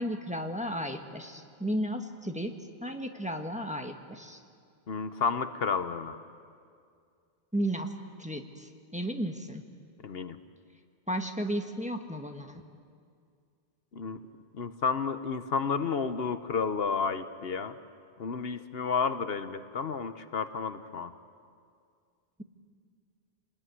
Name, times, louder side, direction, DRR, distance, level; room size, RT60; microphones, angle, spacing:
voice 1, 0.0-2.5 2.8-4.4 7.5-9.6 11.1-12.6, equal, 5° right, 4 dB, 1.5 m, -34 dB
voice 2, 4.9-6.2 10.0-10.4 13.9-14.2 14.5-17.7 18.2-21.1, left 5 dB, 70° left, 10 dB, 1.1 m, -31 dB
28.5 x 20.0 x 9.5 m, 2.3 s
omnidirectional pair, 1.1 m